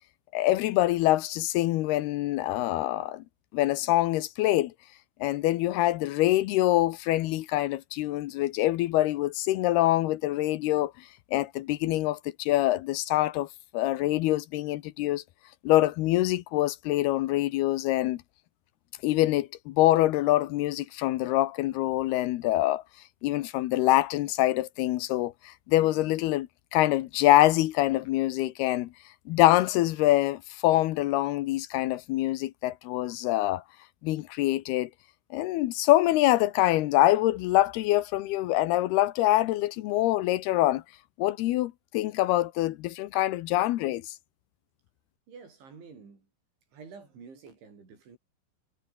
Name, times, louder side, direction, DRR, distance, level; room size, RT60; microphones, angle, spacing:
voice 1, 0.3-3.2 3.5-4.7 5.2-13.5 13.7-15.2 15.6-18.2 19.0-22.8 23.2-28.9 29.3-33.6 34.0-34.9 35.3-40.8 41.2-44.1, left 15 dB, 75° left, 2.4 m, -25 dB
voice 2, 45.3-46.3 46.7-48.2, right 5 dB, 75° right, 9.2 m, -49 dB
omnidirectional pair, 5.5 m